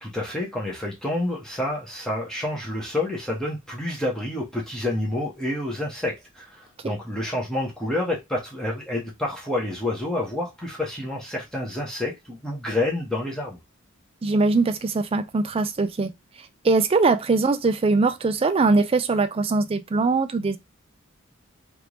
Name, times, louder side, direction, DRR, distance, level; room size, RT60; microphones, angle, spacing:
voice 1, 0.0-13.6, left 1 dB, 5° left, 0.9 m, -28 dB
voice 2, 14.2-16.1 16.6-20.6, right 3 dB, 30° right, 0.4 m, -21 dB
3.3 x 2.5 x 3.0 m
head